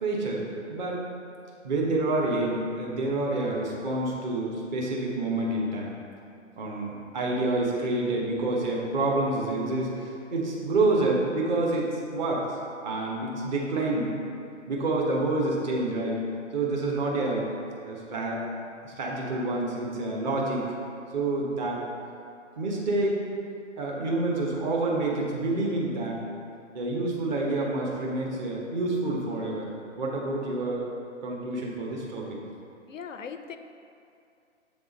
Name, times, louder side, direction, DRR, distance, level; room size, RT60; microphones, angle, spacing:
voice 1, 0.0-1.1 1.6-5.9 6.6-12.6 12.8-14.1 14.7-16.2 16.5-17.5 17.9-18.4 18.8-20.7 21.1-21.9 22.6-23.2 23.8-26.2 26.7-30.9 31.2-32.4, right 2 dB, 35° right, -3 dB, 1.0 m, -28 dB
voice 2, 32.9-33.6, left 6 dB, 90° left, 8 dB, 0.5 m, -39 dB
7.1 x 3.5 x 4.0 m, 2.5 s
figure-of-eight pair, 130°, 38 cm